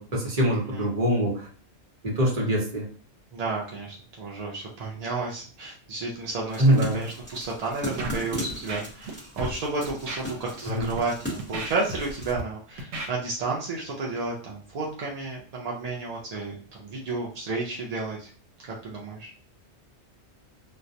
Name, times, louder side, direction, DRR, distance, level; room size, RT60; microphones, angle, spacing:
voice 1, 0.0-1.5 2.0-2.9 6.6-7.0 10.6-10.9, right 1 dB, 40° right, -3 dB, 0.8 m, -23 dB
voice 2, 3.3-18.3 18.6-19.3, right 3 dB, 55° right, -3 dB, 0.4 m, -32 dB
sound 1, 6.5-12.3, equal, 10° left, 0.8 m, -38 dB
Scratching (performance technique), 8.0-8.2 8.5-9.1 9.4-9.6 10.1-10.2 10.8-11.0 11.4-12.4 12.8-13.1, right 2 dB, 75° right, 0.9 m, -34 dB
2.2 x 2.1 x 2.6 m, 0.42 s
omnidirectional pair, 1.2 m